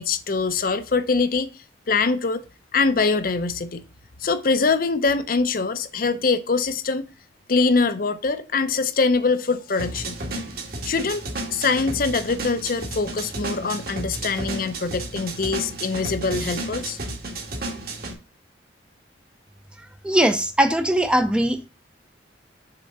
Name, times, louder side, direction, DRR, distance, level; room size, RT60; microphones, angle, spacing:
voice 1, 0.0-1.5 1.9-2.4 2.7-3.8 4.2-7.1 7.5-10.2 10.8-11.2 11.5-17.0, left 4 dB, 50° left, 0.6 m, -23 dB
sound 1, 9.8-18.1, right 2 dB, 55° right, 1.8 m, -32 dB
voice 2, 20.0-21.7, right 1 dB, 5° right, 0.6 m, -20 dB
6.7 x 3.7 x 5.4 m
head